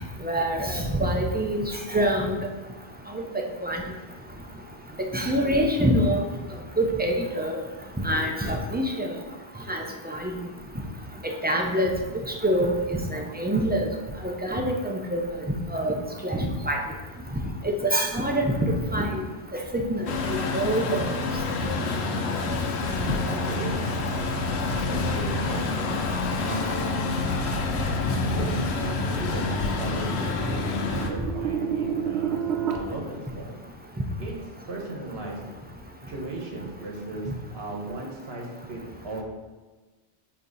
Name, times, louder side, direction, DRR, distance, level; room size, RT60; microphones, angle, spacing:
voice 1, 0.2-1.6 1.9-2.4 3.1-3.2 3.6-3.8 5.1-6.2 6.8-7.6 8.0-9.2 9.7-10.3 11.4-11.9 12.4-12.7 13.1-13.9 14.2-15.2 15.7-15.9 16.2-16.8 17.6-19.2 19.7-21.0 26.5-26.6, right 1 dB, 10° right, 1 dB, 0.5 m, -25 dB
Truck, 20.1-31.1, left 3 dB, 80° left, 1.0 m, -27 dB
voice 2, 23.2-23.9 24.6-25.8 26.4-27.1 28.2-33.6 34.2-34.3 34.7-35.4 36.1-39.2, right 2 dB, 70° right, 0 dB, 1.4 m, -36 dB
sound 1, 28.0-32.8, right 8 dB, 85° right, 0.9 m, -31 dB
8.3 x 2.9 x 4.1 m, 1.2 s
omnidirectional pair, 1.1 m